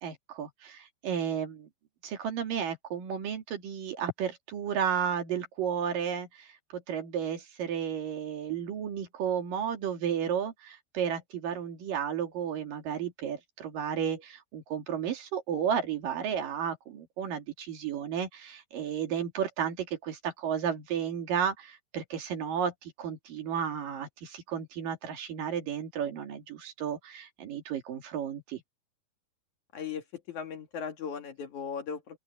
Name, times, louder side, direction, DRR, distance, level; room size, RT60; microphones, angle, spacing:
voice 1, 0.0-1.7 2.0-28.6, right 8 dB, 70° right, 3.9 m, -33 dB
voice 2, 29.7-32.2, left 6 dB, 60° left, 3.3 m, -37 dB
open air
omnidirectional pair, 4.1 m